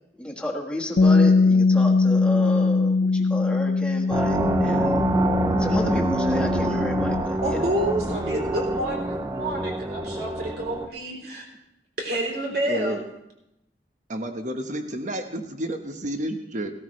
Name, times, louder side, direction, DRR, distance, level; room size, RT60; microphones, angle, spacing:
voice 1, 0.1-5.0 5.6-7.6, left 1 dB, 5° left, 0 dB, 1.5 m, -32 dB
Bass guitar, 1.0-7.2, left 3 dB, 60° left, 0.4 m, -21 dB
sound 1, 4.1-10.9, right 1 dB, 20° right, 0.5 m, -26 dB
voice 2, 7.4-11.4 12.0-13.0, right 1 dB, 60° right, 0 dB, 3.5 m, -28 dB
voice 3, 12.5-13.0 14.1-16.7, right 1 dB, 45° right, 6 dB, 1.2 m, -31 dB
16.5 x 13.0 x 3.3 m, 0.83 s
head